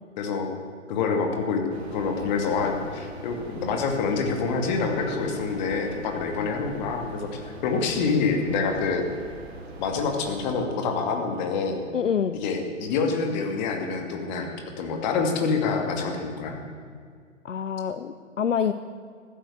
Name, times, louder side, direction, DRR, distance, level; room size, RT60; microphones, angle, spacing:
voice 1, 0.2-0.5 0.9-1.6 1.9-9.1 9.8-11.8 12.4-14.5 14.8-16.6, left 4 dB, 35° left, 4 dB, 2.6 m, -26 dB
sound 1, 1.7-10.4, right 2 dB, 55° right, 3.0 m, -42 dB
voice 2, 11.9-12.4 17.4-18.7, left 7 dB, 70° left, 11 dB, 0.8 m, -26 dB
15.0 x 12.0 x 7.9 m, 2.1 s
figure-of-eight pair, 120°, 39 cm